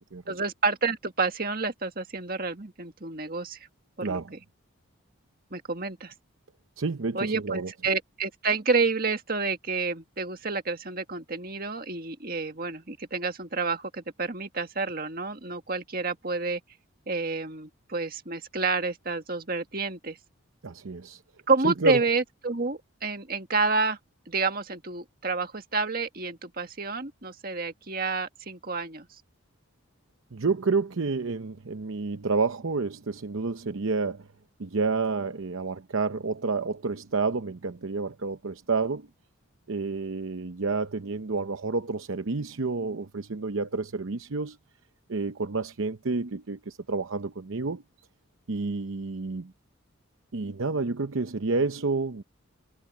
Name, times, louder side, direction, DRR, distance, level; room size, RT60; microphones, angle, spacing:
voice 1, 0.3-3.7 4.0-4.4 5.5-6.1 7.1-16.6 17.1-20.2 21.5-24.0 24.3-29.1, right 4 dB, 45° right, 1.9 m, -29 dB
voice 2, 4.0-4.3 6.8-7.7 20.6-21.2 21.6-22.0 30.3-34.3 34.6-39.1 39.7-44.6 45.1-47.8 48.5-49.5 50.3-52.2, right 4 dB, 70° right, 0.8 m, -29 dB
head